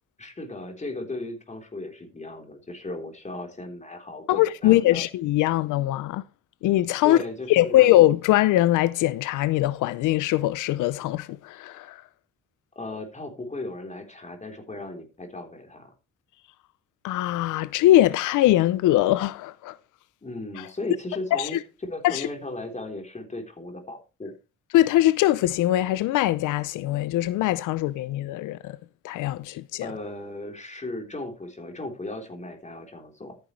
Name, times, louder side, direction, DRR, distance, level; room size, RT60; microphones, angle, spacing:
voice 1, 0.2-5.0 7.0-7.9 12.8-15.9 20.2-21.6 21.8-24.3 29.8-33.4, left 2 dB, 25° left, 3.7 m, -36 dB
voice 2, 4.3-6.2 6.6-7.2 7.5-12.0 17.0-19.8 20.6-20.7 21.3-21.6 22.0-22.3 24.7-28.8 29.0-29.9, left 15 dB, 90° left, 0.6 m, -22 dB
13.5 x 9.7 x 3.2 m
cardioid pair, 90°, 30 cm